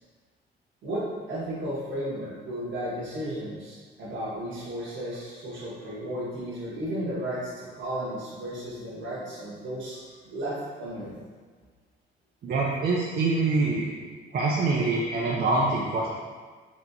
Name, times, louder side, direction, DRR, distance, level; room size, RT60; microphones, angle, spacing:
voice 1, 0.8-11.1, right 1 dB, 70° right, -6 dB, 1.4 m, -34 dB
voice 2, 12.4-13.9 14.3-16.1, right 3 dB, 50° right, -4 dB, 0.5 m, -25 dB
4.3 x 2.9 x 2.7 m, 1.5 s
cardioid pair, 90°, 20 cm